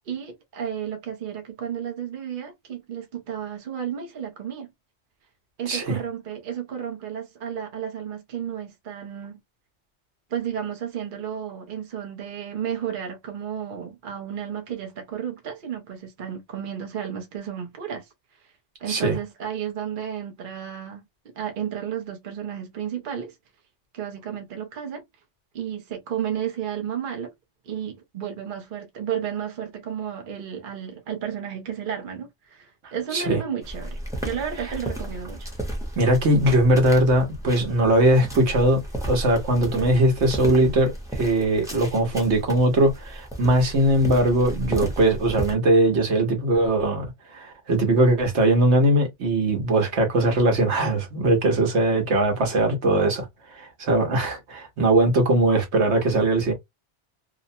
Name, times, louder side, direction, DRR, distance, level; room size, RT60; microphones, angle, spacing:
voice 1, 0.1-4.7 5.6-9.4 10.3-18.1 18.8-21.0 21.4-23.3 23.9-25.0 25.5-27.3 27.7-35.5, right 8 dB, 50° right, 0.7 m, -32 dB
voice 2, 5.7-6.0 18.9-19.2 33.1-33.4 36.0-38.8 39.1-47.1 47.3-53.3 53.5-56.5, right 1 dB, 70° right, 1.2 m, -20 dB
sound 1, 33.6-45.5, right 1 dB, 5° right, 0.7 m, -34 dB
2.9 x 2.0 x 2.6 m
omnidirectional pair, 1.2 m